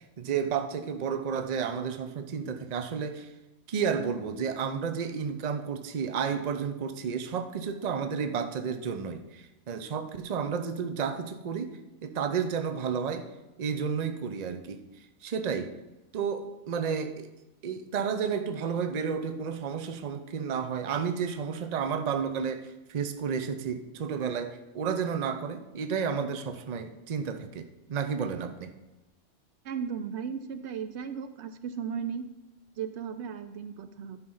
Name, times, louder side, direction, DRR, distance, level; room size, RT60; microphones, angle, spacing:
voice 1, 0.0-3.3 3.7-13.3 13.6-14.8 15.2-15.7 16.1-17.3 17.6-28.7, right 6 dB, 45° right, 8 dB, 0.6 m, -32 dB
voice 2, 29.6-32.3 32.8-34.2, right 7 dB, 70° right, 11 dB, 0.8 m, -36 dB
10.5 x 5.1 x 5.4 m, 1.0 s
omnidirectional pair, 1.2 m